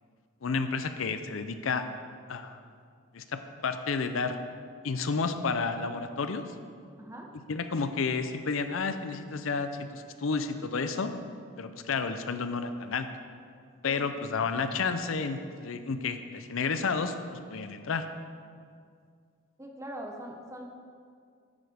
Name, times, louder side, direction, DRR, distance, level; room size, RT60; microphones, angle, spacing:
voice 1, 0.4-1.9 2.3-2.6 3.1-4.4 4.8-6.4 7.5-11.1 11.6-13.1 13.8-17.1 17.5-18.0, left 4 dB, 75° left, 9 dB, 0.5 m, -31 dB
voice 2, 7.0-7.3 13.8-14.5 19.6-20.6, right 1 dB, 15° right, 1 dB, 0.7 m, -42 dB
10.0 x 8.8 x 3.5 m, 2.2 s
head